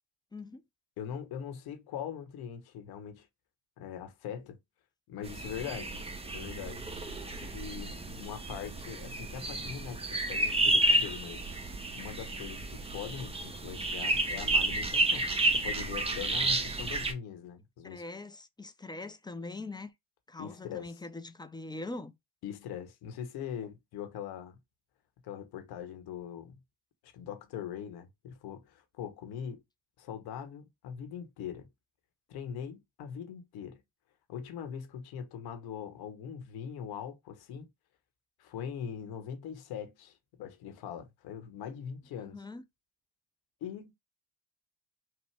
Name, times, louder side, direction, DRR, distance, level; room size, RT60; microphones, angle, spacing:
voice 1, 0.3-0.6 17.8-19.9 20.3-22.1 42.2-42.6, left 2 dB, 10° left, 0.4 m, -42 dB
voice 2, 1.0-3.3 3.8-4.6 5.1-6.0 6.3-6.9 7.4-11.4 11.9-18.0 20.4-21.0 22.4-24.6 25.2-26.6 27.0-29.6 30.0-31.7 32.3-33.8 34.3-37.7 38.4-42.4 43.6-43.9, left 8 dB, 80° left, 1.1 m, -42 dB
sound 1, 5.2-17.1, right 2 dB, 15° right, 0.8 m, -31 dB
6.0 x 2.1 x 3.3 m
cardioid pair, 115°, 37 cm